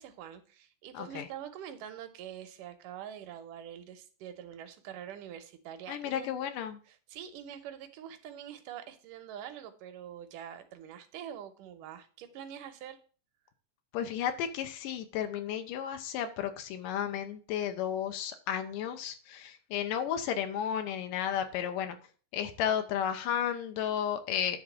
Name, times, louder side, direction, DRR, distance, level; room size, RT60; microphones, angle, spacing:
voice 1, 0.0-6.3 6.9-13.0, right 9 dB, 75° right, 8 dB, 2.5 m, -45 dB
voice 2, 0.9-1.3 5.9-6.8 13.9-22.0 22.3-24.6, left 9 dB, 85° left, 8 dB, 2.5 m, -33 dB
10.0 x 3.7 x 7.3 m, 0.40 s
omnidirectional pair, 3.8 m